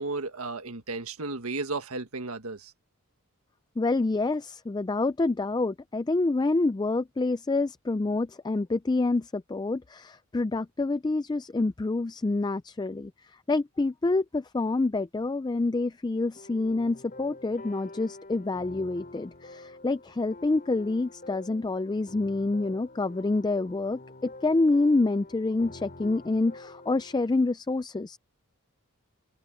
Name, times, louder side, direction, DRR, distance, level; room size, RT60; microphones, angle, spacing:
voice 1, 0.0-2.7, right 3 dB, 80° right, 1.6 m, -34 dB
voice 2, 3.8-13.1 13.5-28.2, left 3 dB, 20° left, 0.3 m, -27 dB
sound 1, 16.3-27.3, left 2 dB, 40° left, 3.9 m, -47 dB
open air
head